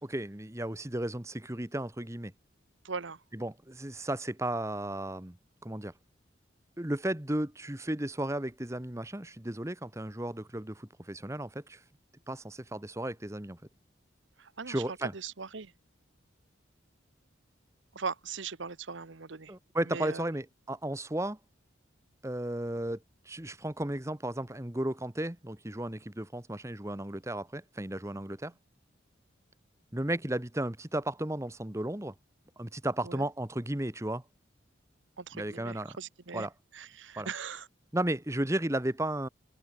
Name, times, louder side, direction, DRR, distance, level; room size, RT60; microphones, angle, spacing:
voice 1, 0.0-2.3 3.3-5.4 5.6-5.9 6.8-11.8 12.3-13.6 14.7-15.1 19.5-21.4 22.2-23.0 23.2-28.5 29.9-32.1 32.6-34.2 35.3-36.0 36.3-36.5 37.2-37.3 37.9-39.3, right 1 dB, 15° right, 1.2 m, -34 dB
voice 2, 2.8-3.2 14.4-15.7 17.9-19.5 19.8-20.2 33.0-33.3 35.2-36.5 36.7-37.7, right 5 dB, 70° right, 1.0 m, -40 dB
head